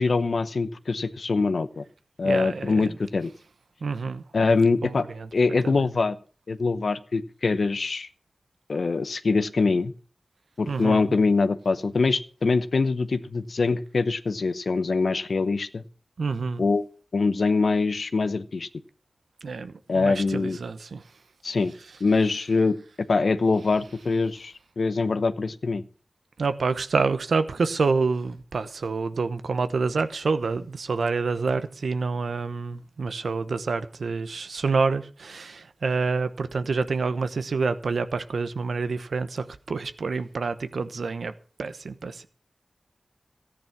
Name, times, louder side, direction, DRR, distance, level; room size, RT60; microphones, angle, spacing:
voice 1, 0.0-1.8 2.2-3.3 4.3-5.1 5.3-6.2 6.5-8.1 8.7-9.9 10.6-15.8 16.6-16.8 17.1-18.7 19.9-20.6 21.4-21.7 22.0-25.8, left 4 dB, 75° left, 0.8 m, -24 dB
voice 2, 2.2-2.9 3.8-4.2 4.8-5.3 5.6-5.8 10.7-11.1 16.2-16.6 19.4-21.0 26.4-41.3 41.6-42.3, right 4 dB, 85° right, 1.0 m, -27 dB
14.0 x 10.0 x 6.0 m
cardioid pair, 40°, 0 cm